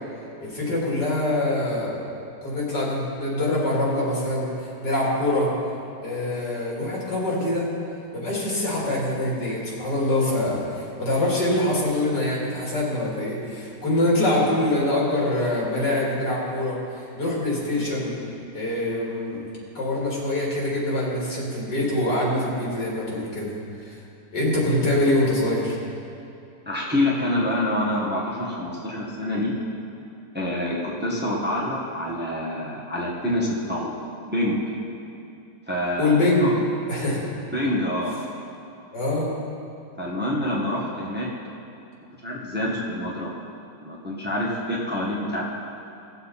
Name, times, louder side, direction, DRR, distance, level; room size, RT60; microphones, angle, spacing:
voice 1, 0.4-2.0 2.4-5.5 6.0-7.7 8.1-18.1 18.5-19.4 19.7-23.5 23.8-24.0 24.3-25.8 36.0-36.5 36.9-37.3 38.9-39.3, left 1 dB, 75° left, -5 dB, 2.9 m, -24 dB
voice 2, 26.6-29.5 30.3-33.9 34.3-34.6 35.7-36.5 37.5-38.1 40.0-41.3 42.2-43.3 43.8-45.5, left 1 dB, 5° right, -5 dB, 1.3 m, -26 dB
17.5 x 7.0 x 4.2 m, 2.6 s
omnidirectional pair, 1.8 m